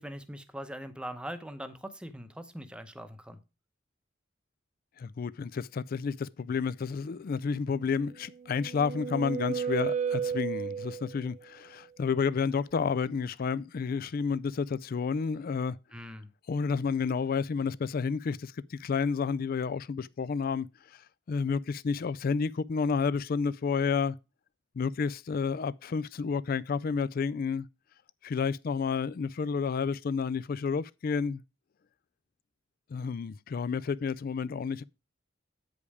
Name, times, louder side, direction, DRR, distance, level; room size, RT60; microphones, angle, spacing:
voice 1, 0.0-3.4 15.9-16.3, equal, 5° right, 0.8 m, -41 dB
voice 2, 5.0-15.8 16.5-20.7 21.3-24.2 24.8-27.7 28.2-31.4 32.9-34.8, left 5 dB, 50° left, 0.4 m, -30 dB
sound 1, 8.2-11.3, right 7 dB, 35° right, 0.4 m, -33 dB
8.3 x 5.2 x 4.8 m
head